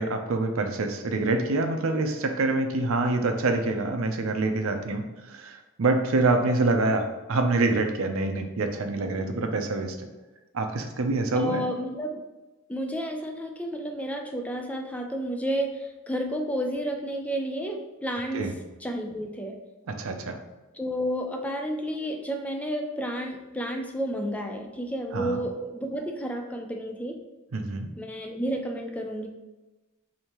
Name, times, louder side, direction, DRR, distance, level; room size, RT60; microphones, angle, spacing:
voice 1, 0.0-9.9 10.5-11.6 18.3-18.5 19.9-20.4 25.1-25.4 27.5-27.9, right 2 dB, 80° right, 5 dB, 0.6 m, -26 dB
voice 2, 11.3-12.2 12.7-18.5 18.8-19.6 20.7-27.2 28.0-29.3, equal, 5° left, 3 dB, 0.4 m, -31 dB
5.1 x 2.7 x 3.0 m, 1.1 s
head